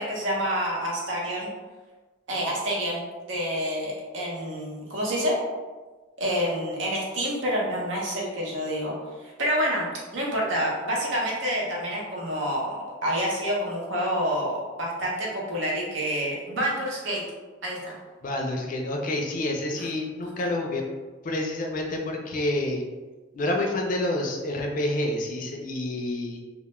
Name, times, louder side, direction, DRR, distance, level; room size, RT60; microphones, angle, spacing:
voice 1, 0.0-1.5 2.3-5.4 6.2-8.9 9.2-17.2 17.6-17.9 19.8-19.9, equal, 65° right, -4 dB, 0.7 m, -28 dB
voice 2, 18.2-20.8 21.2-22.8 23.3-26.4, left 1 dB, 45° left, 1 dB, 0.4 m, -28 dB
2.2 x 2.1 x 2.9 m, 1.3 s
head